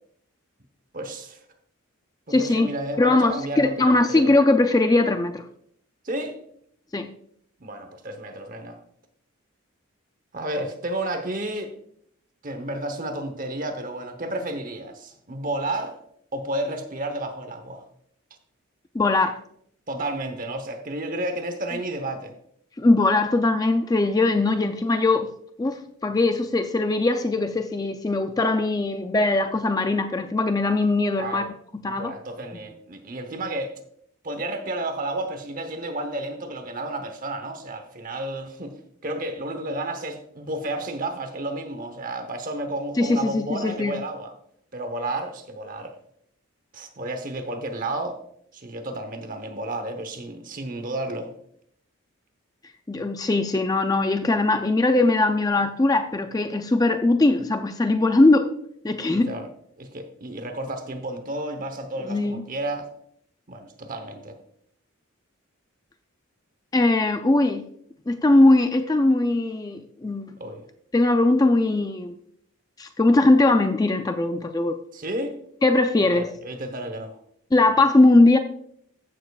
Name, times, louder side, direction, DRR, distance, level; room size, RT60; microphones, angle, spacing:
voice 1, 0.9-1.4 2.3-4.4 6.0-6.4 7.6-8.8 10.3-11.7 12.4-16.0 16.3-17.8 19.9-22.3 31.2-31.5 31.9-33.7 34.2-38.7 39.0-44.3 44.7-45.9 46.7-48.2 48.5-51.3 59.1-59.5 59.8-62.9 63.5-64.4 70.4-70.6 74.9-75.4 76.0-77.2, right 1 dB, 40° right, 7 dB, 0.9 m, -31 dB
voice 2, 2.3-5.4 6.9-7.1 18.9-19.4 22.8-25.3 25.6-32.1 43.0-44.0 52.9-58.5 58.8-59.3 62.1-62.4 66.7-67.6 68.1-70.3 70.9-72.1 72.8-74.8 75.6-76.3 77.5-78.4, left 2 dB, 15° left, 7 dB, 0.3 m, -20 dB
15.0 x 6.9 x 2.4 m, 0.67 s
head